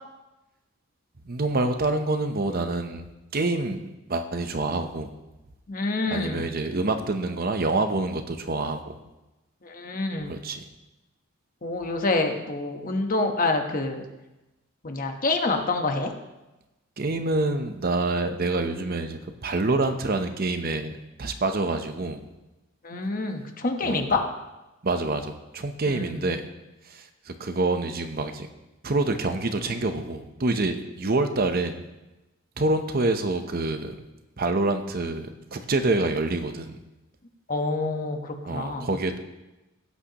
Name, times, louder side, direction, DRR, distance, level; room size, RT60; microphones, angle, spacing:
voice 1, 1.3-3.1 3.3-5.1 6.1-9.0 10.3-10.6 17.0-20.9 21.2-22.2 23.8-24.0 24.8-26.4 26.9-28.5 28.8-31.8 32.6-33.9 34.4-36.8 38.4-39.2, right 2 dB, 45° right, 7 dB, 0.8 m, -27 dB
voice 2, 5.7-6.5 9.6-10.4 11.6-14.1 14.8-16.1 22.8-24.2 25.9-26.2 37.5-38.9, left 3 dB, 40° left, 4 dB, 1.2 m, -27 dB
16.5 x 8.5 x 3.0 m, 1.0 s
head